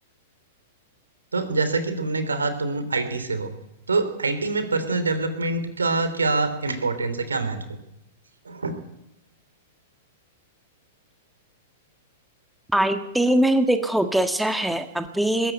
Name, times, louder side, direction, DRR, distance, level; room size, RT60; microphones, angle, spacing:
voice 1, 1.3-3.5 3.9-7.8 8.4-8.8, right 3 dB, 85° right, 10 dB, 3.1 m, -25 dB
voice 2, 12.7-15.5, right 1 dB, 5° right, 7 dB, 1.6 m, -22 dB
21.0 x 15.0 x 9.0 m, 0.86 s
hypercardioid pair, 105°, 0 cm